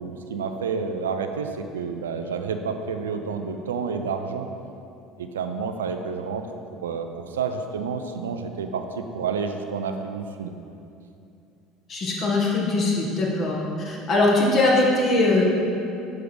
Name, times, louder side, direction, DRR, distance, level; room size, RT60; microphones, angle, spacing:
voice 1, 0.0-4.5 5.2-6.4 6.8-10.5, right 5 dB, 90° right, 6 dB, 0.4 m, -29 dB
voice 2, 11.9-13.6 13.8-15.4, left 2 dB, 45° left, -3 dB, 1.6 m, -21 dB
6.6 x 4.6 x 5.0 m, 2.6 s
hypercardioid pair, 70°, 0 cm